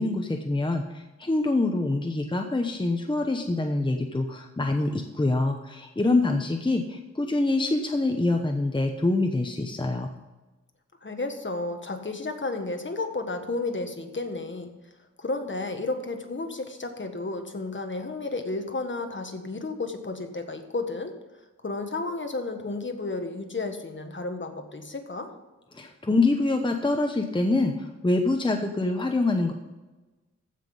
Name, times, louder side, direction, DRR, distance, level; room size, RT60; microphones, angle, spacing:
voice 1, 0.0-10.1 25.7-29.5, left 2 dB, 15° left, 4 dB, 0.9 m, -25 dB
voice 2, 11.0-14.7 15.2-21.1 21.6-25.3, left 3 dB, 40° left, 5 dB, 1.5 m, -32 dB
15.0 x 6.0 x 5.3 m, 1.1 s
wide cardioid pair, 95°, 30 cm